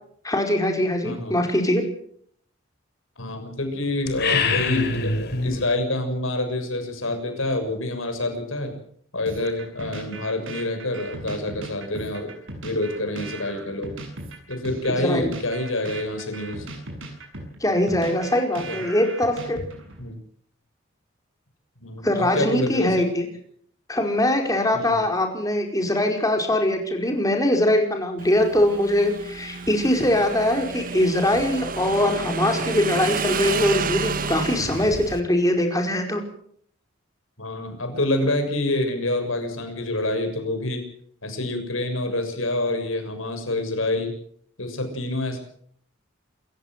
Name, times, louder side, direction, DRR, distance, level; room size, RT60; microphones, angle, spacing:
voice 1, 0.2-1.8 15.0-15.3 17.6-19.6 22.0-23.3 23.9-36.2, left 1 dB, 15° left, 3 dB, 5.0 m, -22 dB
voice 2, 1.0-1.4 3.2-5.1 5.4-8.7 9.1-12.3 12.6-13.9 14.5-16.7 18.7-18.8 20.0-20.2 21.8-23.1 24.7-25.0 37.4-40.8 41.2-44.2 44.6-45.4, left 2 dB, 85° left, 6 dB, 6.9 m, -27 dB
sound 1, 4.1-5.6, left 4 dB, 55° left, 3.7 m, -24 dB
sound 2, 9.3-20.0, right 2 dB, 75° right, 7.4 m, -38 dB
Motorcycle / Engine, 28.2-35.2, right 5 dB, 45° right, 1.4 m, -30 dB
28.0 x 15.0 x 7.7 m, 0.63 s
head